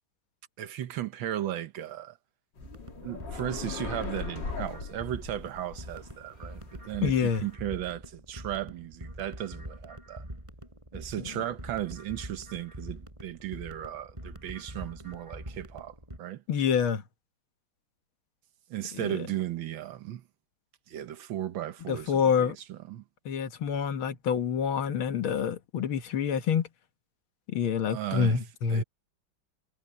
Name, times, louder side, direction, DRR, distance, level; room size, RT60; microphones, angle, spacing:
voice 1, 0.6-2.2 3.0-10.3 10.9-16.4 18.7-20.2 20.9-23.0 27.9-28.4 28.7-28.8, right 12 dB, 75° right, 1.7 m, -36 dB
sound 1, 2.6-7.5, left 5 dB, 60° left, 2.8 m, -40 dB
sound 2, 2.6-16.2, right 1 dB, 15° right, 7.1 m, -44 dB
voice 2, 7.0-7.4 16.5-17.0 18.9-19.1 21.9-22.6 23.3-26.7 27.5-28.8, left 7 dB, 90° left, 2.2 m, -27 dB
omnidirectional pair, 2.2 m